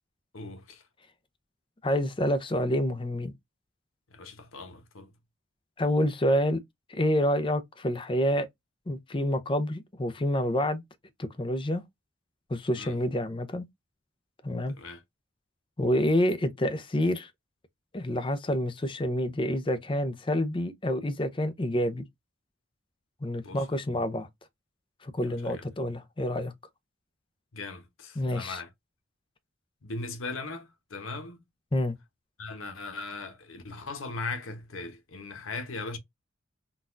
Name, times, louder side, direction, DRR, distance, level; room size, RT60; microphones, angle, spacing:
voice 1, 0.3-0.8 4.1-5.1 12.7-13.0 14.7-15.0 23.4-23.7 25.3-25.6 27.5-28.7 29.8-31.4 32.4-36.0, left 3 dB, 90° left, 0.9 m, -39 dB
voice 2, 1.8-3.3 5.8-6.6 6.9-8.5 8.9-10.8 11.2-11.8 12.5-13.7 14.4-14.7 15.8-17.3 17.9-22.1 23.2-24.3 25.0-26.5 28.2-28.6 31.7-32.0, left 1 dB, 25° left, 0.5 m, -28 dB
3.9 x 2.3 x 2.5 m
head